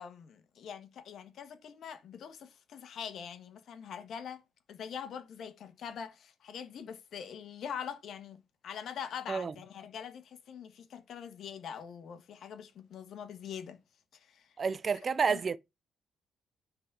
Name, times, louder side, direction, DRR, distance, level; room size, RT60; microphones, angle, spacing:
voice 1, 0.0-4.4 4.7-13.8 14.3-14.4 15.3-15.4, left 8 dB, 65° left, 1.4 m, -43 dB
voice 2, 14.6-15.6, right 5 dB, 40° right, 0.5 m, -30 dB
9.7 x 4.0 x 4.6 m
cardioid pair, 90°, 0 cm